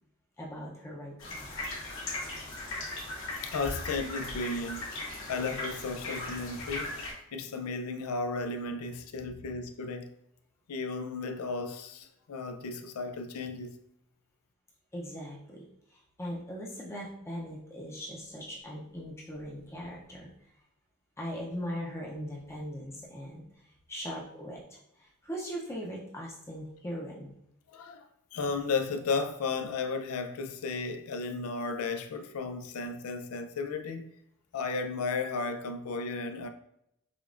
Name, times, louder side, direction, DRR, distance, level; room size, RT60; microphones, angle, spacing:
voice 1, 0.4-1.5 14.9-15.6 15.9-20.3 21.2-23.4 23.9-27.3, equal, 10° left, 0.5 m, -40 dB
sound 1, 1.2-7.1, left 2 dB, 70° left, 1.1 m, -38 dB
voice 2, 3.4-7.0 7.3-10.1 10.7-13.8 27.7-34.1 34.5-36.5, left 4 dB, 85° left, 0.4 m, -34 dB
5.0 x 2.3 x 2.5 m
head